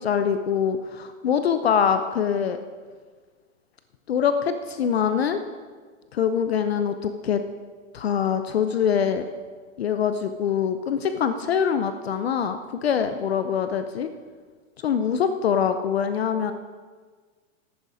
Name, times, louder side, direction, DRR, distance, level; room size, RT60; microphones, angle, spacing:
voice 1, 0.0-2.6 4.1-5.4 6.1-7.4 7.9-9.3 9.8-14.1 14.8-16.5, left 7 dB, 50° left, 9 dB, 0.5 m, -24 dB
10.5 x 8.3 x 4.9 m, 1.5 s
supercardioid pair, 180°, 41 cm